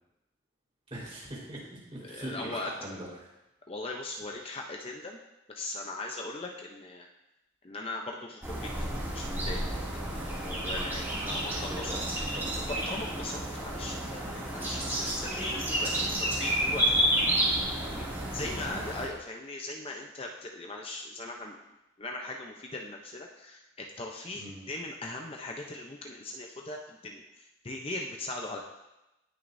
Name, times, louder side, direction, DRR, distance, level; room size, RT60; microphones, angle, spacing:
voice 1, 0.9-3.3 11.2-12.0 12.3-12.6 18.4-18.8 24.3-24.7, right 1 dB, 30° right, -6 dB, 4.1 m, -42 dB
voice 2, 2.0-2.7 3.7-5.2 5.5-7.1 7.6-8.7 9.1-9.8 10.4-11.5 11.8-11.9 12.7-21.6 22.0-27.2 27.6-28.6, left 2 dB, 30° left, 1 dB, 0.7 m, -39 dB
sound 1, 8.4-19.1, right 1 dB, 10° right, 2.5 m, -31 dB
18.5 x 6.5 x 2.7 m, 0.95 s
head